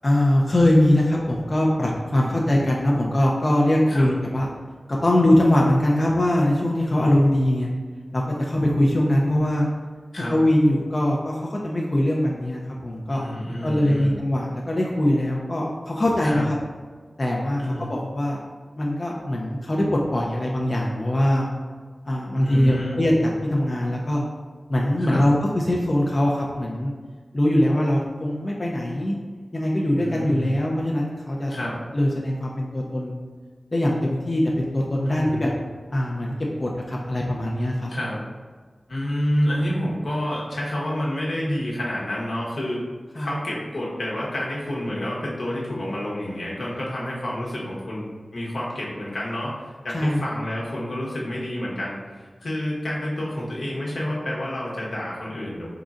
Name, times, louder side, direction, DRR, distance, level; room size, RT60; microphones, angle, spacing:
voice 1, 0.0-4.5 4.9-7.7 8.1-9.7 10.3-13.2 13.6-16.6 17.2-18.4 18.8-21.5 22.1-24.2 24.7-26.9 27.3-29.1 29.5-31.6 31.9-33.2 33.7-35.5 35.9-36.3 36.6-37.9 43.2-43.3 49.9-50.2, left 1 dB, 40° left, -2 dB, 0.5 m, -22 dB
voice 2, 13.1-14.2 16.2-16.5 17.6-17.9 22.3-23.0 25.0-25.3 30.0-30.6 31.5-31.8 35.0-35.4 37.9-38.2 38.9-42.8 43.1-48.1 48.3-55.7, left 1 dB, 80° left, -5 dB, 1.0 m, -29 dB
4.0 x 3.7 x 2.4 m, 1.5 s
wide cardioid pair, 65°, 0 cm